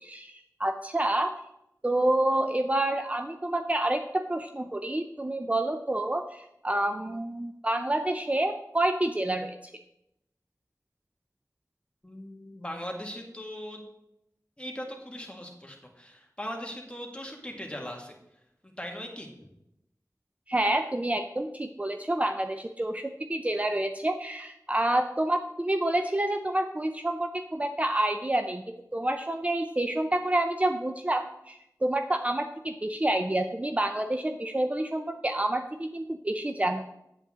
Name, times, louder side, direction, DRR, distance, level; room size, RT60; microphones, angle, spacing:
voice 1, 0.0-1.3 1.8-9.6 20.5-28.6 28.9-36.9, right 1 dB, 20° right, 6 dB, 0.5 m, -28 dB
voice 2, 12.0-13.8 14.6-18.2 18.6-19.3, equal, 15° left, 1 dB, 1.7 m, -39 dB
8.2 x 8.1 x 3.6 m, 0.83 s
wide cardioid pair, 60°, 7 cm